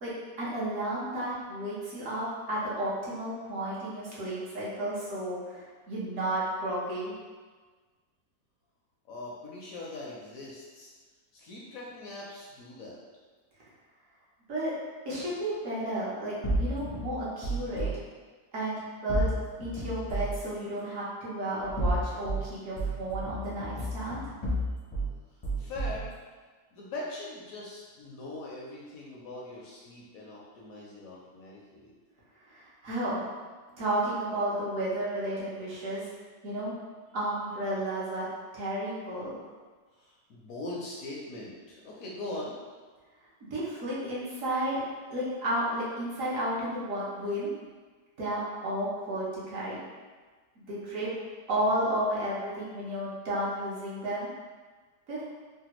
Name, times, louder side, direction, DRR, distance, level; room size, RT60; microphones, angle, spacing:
voice 1, 0.4-7.1 14.5-14.7 15.0-18.0 18.5-19.3 19.6-24.2 32.5-33.2 33.8-36.1 36.4-36.7 37.1-38.3 38.5-39.4 43.4-44.8 45.1-47.5 48.2-49.8 50.6-51.1 51.5-54.3 55.1-55.2, right 1 dB, 60° right, -8 dB, 1.1 m, -32 dB
voice 2, 9.1-10.9 11.3-13.0 25.6-26.1 26.7-31.9 33.7-33.8 40.0-42.5, left 2 dB, 70° left, -4 dB, 0.9 m, -41 dB
sound 1, 16.4-17.9 19.1-20.4 21.6-22.4 22.8-25.1 25.4-26.1, right 1 dB, 40° left, 0.4 m, -31 dB
3.3 x 2.2 x 2.9 m, 1.4 s
omnidirectional pair, 1.7 m